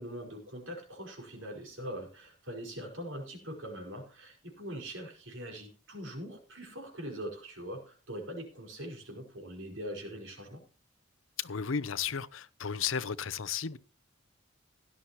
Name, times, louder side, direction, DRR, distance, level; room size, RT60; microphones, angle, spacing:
voice 1, 0.0-10.6, equal, 75° right, 5.2 m, -42 dB
voice 2, 11.4-13.8, left 7 dB, 80° left, 0.7 m, -34 dB
17.0 x 11.5 x 3.0 m
head